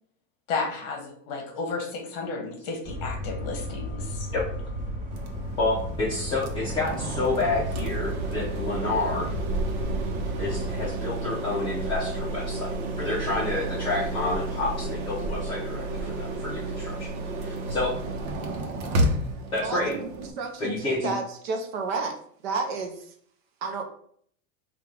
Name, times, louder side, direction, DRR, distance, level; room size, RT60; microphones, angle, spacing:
voice 1, 0.5-4.3, left 4 dB, 40° left, 2 dB, 1.0 m, -33 dB
sound 1, 2.8-10.9, equal, 25° right, 1.4 m, -34 dB
sound 2, 5.1-20.3, right 2 dB, 80° right, 1.0 m, -31 dB
voice 2, 5.6-9.3 10.4-17.1 17.4-17.9 19.5-20.0 20.6-21.1, left 2 dB, 15° left, -8 dB, 0.6 m, -29 dB
voice 3, 19.6-22.2 22.4-23.0 23.6-23.8, right 4 dB, 45° right, 3 dB, 0.7 m, -31 dB
3.6 x 2.5 x 4.4 m, 0.62 s
supercardioid pair, 165°, 41 cm